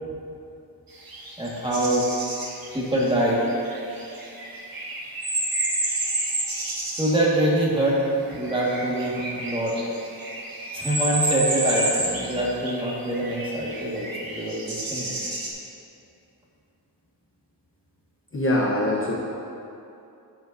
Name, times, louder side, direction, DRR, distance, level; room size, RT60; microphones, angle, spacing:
sound 1, 1.0-7.2 8.3-15.5, right 2 dB, 55° right, 1.4 m, -30 dB
voice 1, 1.4-2.1 2.7-3.5 7.0-9.8 10.7-15.2, right 1 dB, 10° right, -6 dB, 1.7 m, -24 dB
voice 2, 18.3-19.2, left 1 dB, 30° left, -6 dB, 1.1 m, -23 dB
10.5 x 7.8 x 2.7 m, 2.7 s
wide cardioid pair, 105°, 42 cm